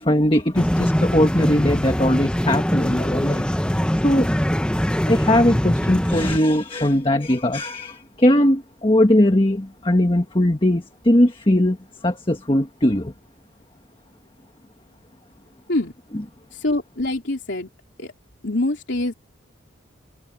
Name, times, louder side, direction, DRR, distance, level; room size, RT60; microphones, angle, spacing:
voice 1, 0.0-3.5 3.7-4.3 5.1-11.8 12.0-13.1, left 1 dB, 25° left, 1.5 m, -19 dB
sound 1, 0.5-6.4, equal, 5° left, 0.7 m, -22 dB
voice 2, 16.5-17.7 18.0-18.1 18.4-19.1, left 2 dB, 65° left, 3.3 m, -24 dB
head